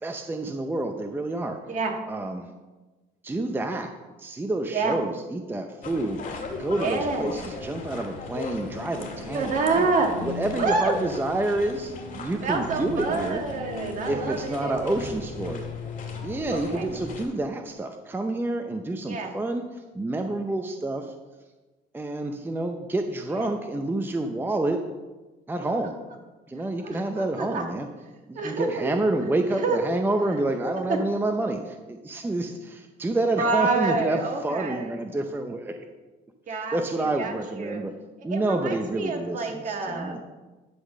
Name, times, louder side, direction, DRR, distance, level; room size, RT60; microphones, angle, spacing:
voice 1, 0.0-1.6 2.1-2.5 3.2-9.9 10.2-13.4 14.1-15.7 16.2-21.1 21.9-24.9 25.5-26.0 26.5-27.9 28.3-35.9 36.5-37.9 38.2-40.2, right 2 dB, 10° right, 5 dB, 0.6 m, -28 dB
sound 1, 5.8-17.3, left 3 dB, 55° left, 2.0 m, -37 dB
voice 2, 6.7-7.3 9.1-10.1 10.6-11.1 12.4-14.9 16.5-16.9 19.0-19.3 23.3-23.5 26.8-27.6 28.3-28.9 29.6-29.9 30.3-30.4 30.9-31.0 33.4-34.9 36.5-37.8 38.3-40.2, right 4 dB, 50° right, 3 dB, 1.6 m, -28 dB
11.5 x 3.9 x 6.4 m, 1.2 s
cardioid pair, 110°, 17 cm